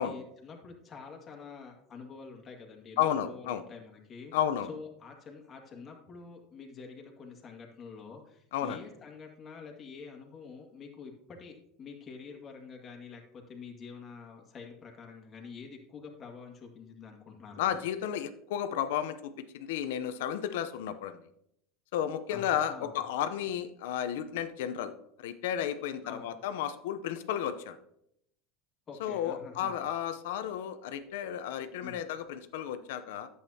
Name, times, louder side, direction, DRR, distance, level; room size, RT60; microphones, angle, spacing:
voice 1, 0.0-4.3 4.6-17.8 22.3-22.9 26.0-26.3 28.9-29.8 31.8-32.0, left 5 dB, 30° left, 1 dB, 2.0 m, -47 dB
voice 2, 3.0-3.6 4.3-4.7 8.5-8.8 17.6-21.2 21.9-24.9 25.2-27.8 29.0-33.3, left 10 dB, 80° left, 10 dB, 0.7 m, -33 dB
11.0 x 8.1 x 2.9 m, 0.75 s
supercardioid pair, 115°, 0 cm